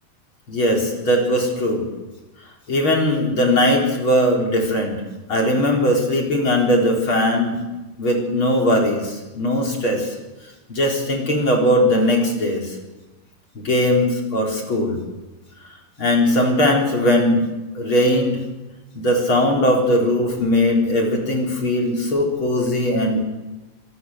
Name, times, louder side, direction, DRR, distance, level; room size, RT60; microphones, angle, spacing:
voice 1, 0.5-1.9 2.7-5.0 5.3-7.6 8.0-10.2 10.7-12.8 13.5-15.0 16.0-17.5 17.7-18.4 18.9-23.2, left 1 dB, 30° left, 0 dB, 4.5 m, -19 dB
26.0 x 18.5 x 8.0 m, 1.1 s
omnidirectional pair, 4.9 m